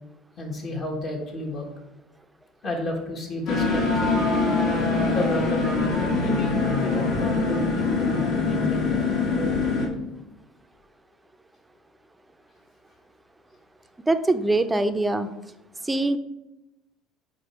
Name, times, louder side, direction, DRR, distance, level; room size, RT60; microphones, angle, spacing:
voice 1, 0.4-1.7 2.6-4.1 5.0-9.1, left 1 dB, 50° left, -1 dB, 1.2 m, -31 dB
sound 1, 3.5-9.9, left 3 dB, 65° left, 1.4 m, -23 dB
voice 2, 14.1-15.3 15.8-16.2, right 2 dB, 15° right, 10 dB, 0.5 m, -23 dB
5.2 x 4.1 x 4.5 m, 0.95 s
supercardioid pair, 80°, 0 cm